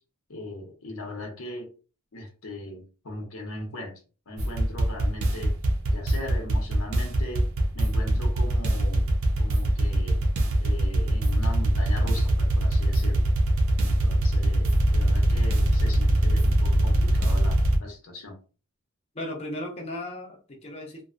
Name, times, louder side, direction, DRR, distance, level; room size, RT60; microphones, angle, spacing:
voice 1, 0.3-1.7 2.1-5.5 5.9-7.5 7.7-9.1 9.4-10.2 10.6-13.3 13.8-18.4, left 1 dB, 85° left, 2 dB, 0.8 m, -38 dB
sound 1, 4.4-17.8, right 1 dB, 80° right, 0.6 m, -22 dB
voice 2, 19.1-21.1, left 1 dB, 30° left, -1 dB, 0.6 m, -36 dB
2.6 x 2.2 x 2.5 m, 0.36 s
head